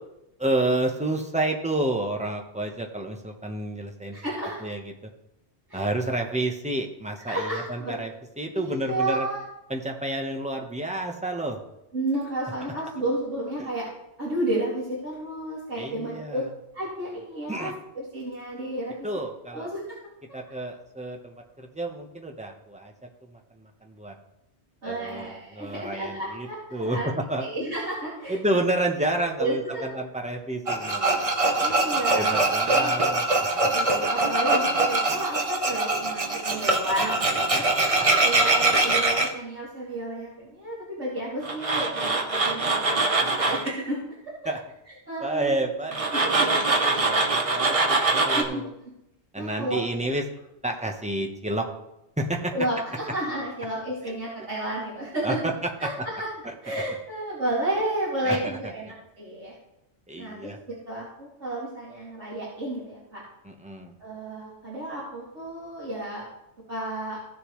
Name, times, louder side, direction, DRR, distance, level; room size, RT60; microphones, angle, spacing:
voice 1, 0.4-4.2 4.6-5.1 5.7-9.3 9.7-11.6 13.6-13.7 15.8-16.5 17.5-17.7 19.0-19.7 20.3-22.9 23.3-24.1 24.8-27.0 27.3-27.5 28.3-31.2 32.1-33.3 33.5-33.7 37.5-37.6 43.0-43.5 44.4-44.6 45.2-48.7 49.3-50.2 50.6-51.7 52.2-52.5 54.1-54.2 55.2-55.5 56.4-56.5 58.2-58.4 60.1-60.6 63.4-63.9, right 1 dB, 5° right, 2 dB, 1.0 m, -30 dB
voice 2, 4.1-4.7 5.7-5.9 7.2-8.0 8.5-9.4 11.9-13.9 14.2-16.4 16.7-18.9 19.5-20.0 24.8-27.1 27.4-28.4 29.4-29.8 31.6-32.9 33.7-37.7 38.2-44.0 44.2-44.5 45.1-45.6 46.1-46.5 48.3-48.9 49.4-49.8 52.5-55.4 55.8-56.3 56.6-59.5 60.2-60.5 60.9-63.2 64.0-66.2 66.7-67.2, right 1 dB, 80° right, -9 dB, 3.2 m, -32 dB
Tools, 30.7-39.3 41.4-43.7 45.9-48.4, right 2 dB, 30° right, 0.9 m, -23 dB
15.5 x 6.9 x 3.2 m, 0.87 s
omnidirectional pair, 1.2 m